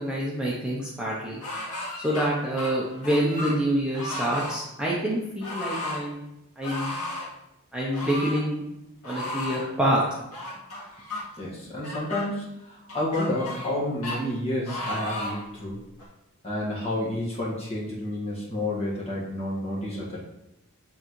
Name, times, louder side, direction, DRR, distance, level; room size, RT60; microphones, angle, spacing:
voice 1, 0.0-1.4 1.9-6.2 6.6-6.9 7.7-8.6 9.0-10.0, right 1 dB, 5° right, -6 dB, 0.8 m, -27 dB
sound 1, 1.4-2.3 2.6-3.6 3.9-4.6 5.4-6.0 6.6-7.3 7.9-8.4 9.0-9.7 10.3-11.2 11.8-12.3 12.9-13.8 14.0-14.2 14.7-15.4 16.0-16.1, left 1 dB, 85° left, 1.7 m, -34 dB
voice 2, 11.4-15.8 16.4-20.2, left 1 dB, 30° left, -6 dB, 1.7 m, -30 dB
8.0 x 3.9 x 3.1 m, 0.87 s
head